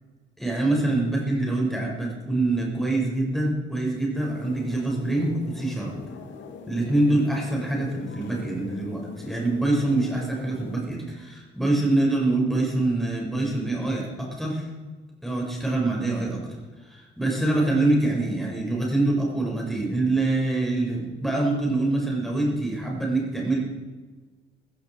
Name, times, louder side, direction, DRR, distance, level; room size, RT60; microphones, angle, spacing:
voice 1, 0.4-5.9 6.7-14.7 15.2-16.6 16.9-23.6, right 2 dB, ahead, -2 dB, 5.7 m, -25 dB
sound 1, 4.2-10.8, left 6 dB, 70° left, 1.8 m, -42 dB
15.0 x 15.0 x 4.7 m, 1.3 s
cardioid pair, 90°, 20 cm